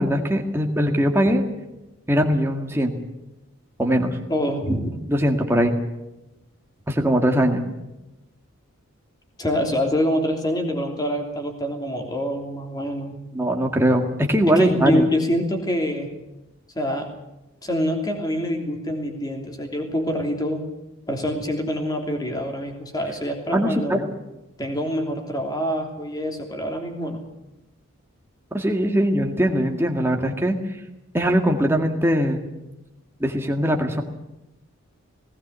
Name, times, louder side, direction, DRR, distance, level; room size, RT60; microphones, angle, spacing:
voice 1, 0.0-1.4 2.1-3.0 3.8-4.2 5.1-5.7 6.9-7.6 13.3-15.1 23.5-24.0 28.5-30.6 31.1-32.4 33.2-34.0, equal, 10° right, 2 dB, 1.9 m, -21 dB
voice 2, 4.3-4.9 9.4-13.2 14.5-16.1 16.7-17.1 17.6-20.6 21.1-24.0 24.6-27.2, equal, 20° left, 3 dB, 3.1 m, -25 dB
19.0 x 17.5 x 8.2 m, 0.97 s
head